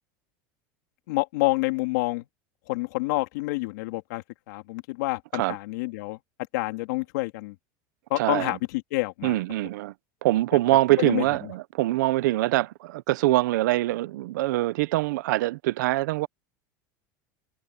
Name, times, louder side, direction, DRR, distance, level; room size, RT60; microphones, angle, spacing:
voice 1, 1.1-2.2 2.7-6.2 6.5-7.5 8.1-9.4 11.0-11.2, left 22 dB, 70° left, 2.7 m, -28 dB
voice 2, 8.2-8.5 9.2-9.9 10.2-16.3, right 17 dB, 90° right, 0.7 m, -24 dB
supercardioid pair, 175°, 10 cm